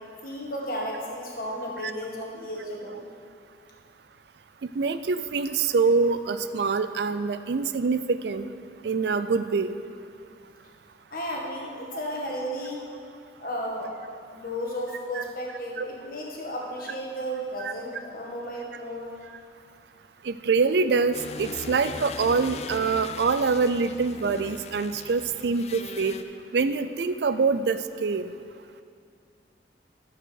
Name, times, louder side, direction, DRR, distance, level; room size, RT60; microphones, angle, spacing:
voice 1, 0.2-3.1 11.1-12.8 13.4-13.9 14.3-19.1, equal, 50° left, -2 dB, 1.7 m, -33 dB
voice 2, 4.8-8.5 8.8-9.8 15.1-15.2 15.8-15.9 17.6-17.7 20.2-26.2 26.5-28.2, right 4 dB, 70° right, 11 dB, 0.4 m, -25 dB
sound 1, 21.1-26.2, left 4 dB, 35° left, 0.4 m, -39 dB
13.5 x 4.8 x 6.4 m, 2.4 s
head